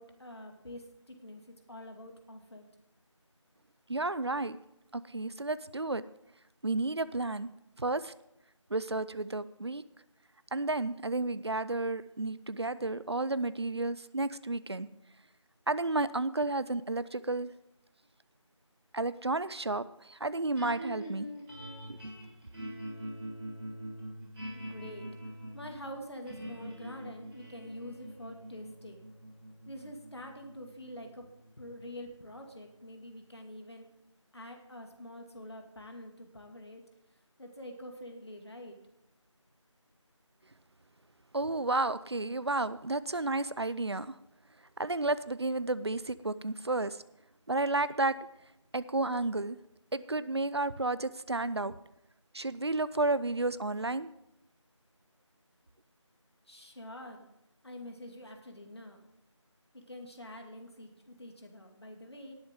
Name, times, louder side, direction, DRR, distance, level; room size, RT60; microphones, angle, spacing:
voice 1, 0.0-2.7 24.5-25.1 25.5-29.0 29.7-31.2 31.6-33.9 34.3-36.8 37.4-38.8 56.5-57.3 57.6-59.0 59.7-62.3, left 1 dB, 55° left, 3 dB, 2.2 m, -46 dB
voice 2, 3.9-4.6 4.9-6.0 6.6-7.5 7.8-8.1 8.7-9.8 10.5-14.9 15.7-17.5 18.9-21.3 21.9-22.0 41.3-44.2 44.8-47.0 47.5-48.1 48.7-49.6 49.9-51.7 52.3-54.1, right 2 dB, 55° right, 16 dB, 0.6 m, -32 dB
sound 1, 20.5-32.8, equal, 5° right, 1.9 m, -44 dB
19.0 x 7.2 x 3.7 m, 0.82 s
figure-of-eight pair, 175°, 16 cm